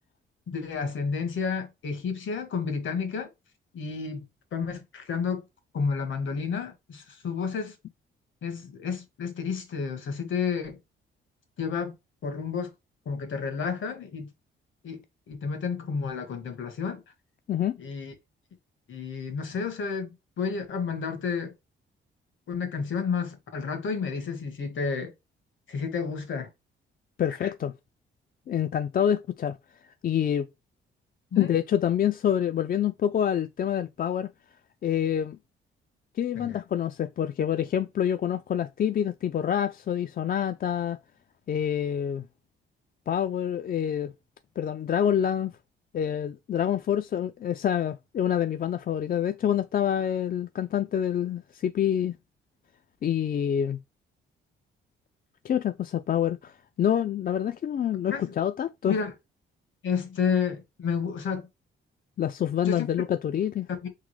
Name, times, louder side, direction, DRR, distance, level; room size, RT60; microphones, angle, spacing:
voice 1, 0.5-3.3 3.7-4.3 4.5-5.4 5.7-7.7 8.4-10.8 11.6-11.9 12.2-12.7 13.0-14.3 14.8-15.0 15.3-17.0 17.8-18.1 18.9-21.5 22.5-25.1 25.7-26.5 27.4-27.5 31.3-31.5 36.3-36.6 58.1-58.3 58.8-59.1 59.8-61.4 62.6-62.9 63.8-63.9, left 5 dB, 65° left, 1.6 m, -31 dB
voice 2, 27.2-27.7 28.5-29.6 30.0-30.5 31.4-34.3 34.8-35.4 36.2-41.0 41.5-42.2 43.1-44.1 44.6-45.5 45.9-52.2 53.0-53.8 55.4-59.0 62.2-63.7, left 9 dB, 45° left, 0.4 m, -27 dB
3.9 x 3.8 x 3.2 m
cardioid pair, 85°, 21 cm